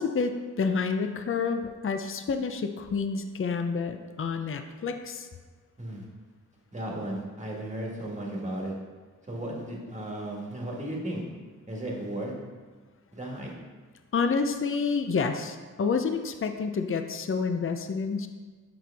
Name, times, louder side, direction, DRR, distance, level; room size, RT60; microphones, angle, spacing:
voice 1, 0.0-5.3 14.1-18.3, left 5 dB, 40° left, 7 dB, 0.5 m, -29 dB
voice 2, 6.7-8.7 9.3-11.2 11.7-12.3 13.1-13.5, right 1 dB, 20° right, -2 dB, 1.5 m, -35 dB
7.4 x 6.0 x 3.4 m, 1.4 s
wide cardioid pair, 95°, 32 cm